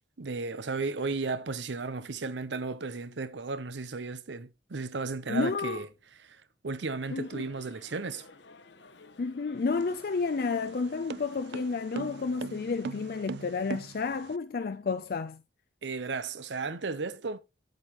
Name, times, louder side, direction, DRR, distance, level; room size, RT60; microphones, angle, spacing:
voice 1, 0.2-5.9 6.2-8.2 15.8-17.4, right 3 dB, 80° right, 0.8 m, -34 dB
voice 2, 5.3-5.8 7.1-7.4 9.2-15.4, left 4 dB, 55° left, 0.4 m, -31 dB
sound 1, 7.0-13.3, left 3 dB, 80° left, 1.0 m, -54 dB
sound 2, 9.6-14.4, right 5 dB, 65° right, 0.3 m, -41 dB
8.9 x 7.8 x 3.0 m
head